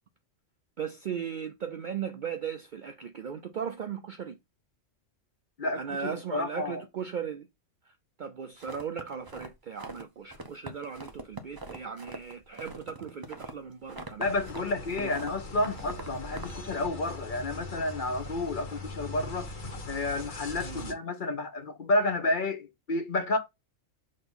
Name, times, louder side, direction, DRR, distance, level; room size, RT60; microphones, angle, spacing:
voice 1, 0.8-4.4 5.7-7.5 7.9-8.0 8.2-14.3 15.0-15.1 20.6-20.9, right 7 dB, 60° right, 0.5 m, -37 dB
voice 2, 5.6-6.8 14.2-19.5 19.9-23.4, left 2 dB, 45° left, 0.8 m, -30 dB
sound 1, 8.6-10.0 10.3-14.6 14.9-16.9, right 2 dB, 20° right, 0.7 m, -43 dB
sound 2, 14.2-20.9, left 2 dB, 90° left, 1.6 m, -41 dB
6.4 x 2.9 x 5.4 m
omnidirectional pair, 1.3 m